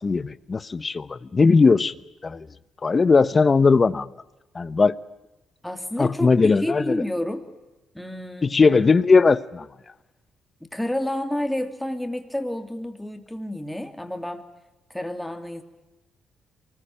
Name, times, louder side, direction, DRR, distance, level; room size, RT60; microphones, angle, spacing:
voice 1, 0.0-1.9 2.2-2.5 2.8-4.1 4.5-4.9 6.0-7.0 8.4-9.7, left 4 dB, 30° left, 17 dB, 1.0 m, -19 dB
voice 2, 5.6-7.4 7.9-8.7 10.7-14.5 14.9-15.6, left 1 dB, 5° left, 6 dB, 3.0 m, -30 dB
24.0 x 20.5 x 8.9 m, 1.0 s
cardioid pair, 90°, 0 cm